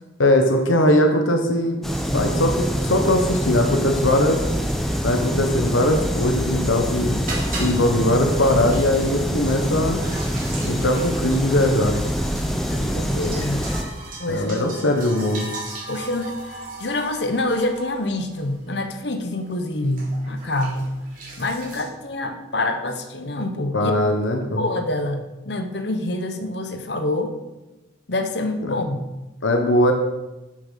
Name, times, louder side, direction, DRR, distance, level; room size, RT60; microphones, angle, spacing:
voice 1, 0.2-4.4 5.0-7.2 7.6-10.0 10.6-12.0 14.3-15.5 23.7-24.7 29.4-29.9, left 1 dB, 85° left, 4 dB, 1.2 m, -20 dB
sound 1, 1.8-13.8, equal, ahead, 0.9 m, -25 dB
sound 2, 7.1-21.8, right 2 dB, 45° right, 3.2 m, -39 dB
voice 2, 12.7-13.6 14.2-14.7 15.9-16.4 16.8-20.9 21.4-23.9 24.6-27.4 28.1-29.0, left 2 dB, 60° left, 7 dB, 1.1 m, -26 dB
9.7 x 7.5 x 5.8 m, 1.0 s
head